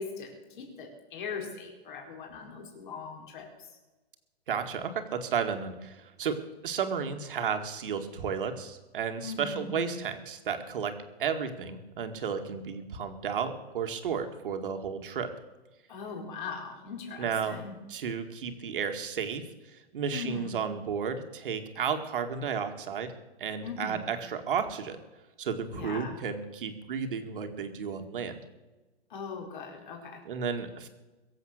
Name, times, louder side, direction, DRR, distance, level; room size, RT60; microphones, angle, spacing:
voice 1, 0.0-3.7 9.2-9.8 15.9-17.7 20.1-20.6 23.6-24.1 25.7-26.2 29.1-30.2, left 5 dB, 50° left, 1 dB, 4.7 m, -40 dB
voice 2, 4.5-15.3 17.2-17.6 17.9-19.4 19.7-23.1 23.4-25.0 25.4-28.3 30.3-30.9, right 6 dB, 55° right, 7 dB, 2.0 m, -33 dB
22.5 x 7.9 x 6.5 m, 1.2 s
hypercardioid pair, 170°, 32 cm